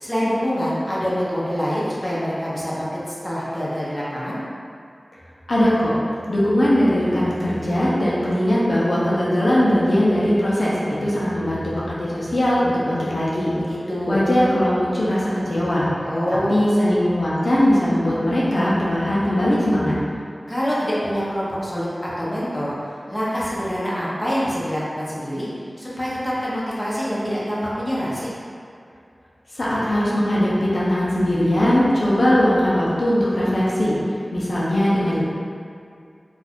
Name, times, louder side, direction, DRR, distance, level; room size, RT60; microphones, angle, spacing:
voice 1, 0.0-4.4 13.6-14.2 16.1-16.9 20.5-22.7 23.1-25.5 25.8-28.3 35.1-35.2, equal, 10° left, -8 dB, 0.7 m, -25 dB
voice 2, 5.5-5.9 6.3-10.7 11.0-13.6 14.1-15.9 16.3-20.0 29.5-34.0 34.3-35.2, equal, 70° left, -8 dB, 0.6 m, -20 dB
2.6 x 2.4 x 3.4 m, 2.4 s
wide cardioid pair, 65°, 0 cm